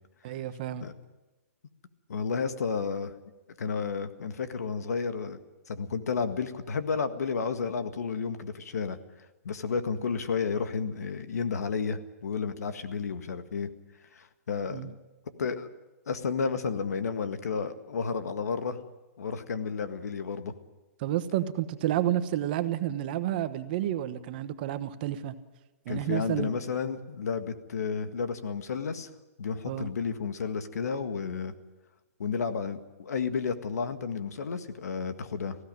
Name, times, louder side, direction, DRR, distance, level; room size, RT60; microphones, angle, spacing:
voice 1, 0.2-0.9 14.7-14.9 21.0-25.3 25.8-26.5 29.7-29.9, right 12 dB, 35° right, 11 dB, 1.1 m, -30 dB
voice 2, 2.1-3.1 3.6-5.4 5.7-9.0 9.4-13.7 14.1-15.0 15.4-15.7 16.1-18.8 19.2-20.5 25.9-29.1 29.4-31.5 32.2-35.6, left 5 dB, 90° left, 9 dB, 1.8 m, -32 dB
19.5 x 16.0 x 9.1 m, 1.1 s
hypercardioid pair, 165°, 8 cm